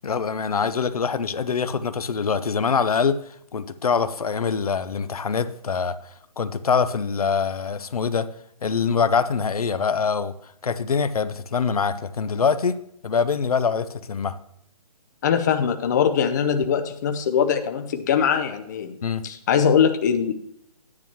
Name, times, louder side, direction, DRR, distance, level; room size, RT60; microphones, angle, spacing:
voice 1, 0.0-3.2 3.5-8.3 8.6-10.3 10.6-12.8 13.0-14.3 19.0-19.2, left 5 dB, 70° left, 13 dB, 0.8 m, -24 dB
voice 2, 15.2-19.0 19.2-20.3, left 7 dB, 30° left, 7 dB, 0.6 m, -21 dB
10.5 x 9.8 x 3.0 m, 0.72 s
hypercardioid pair, 155°, 20 cm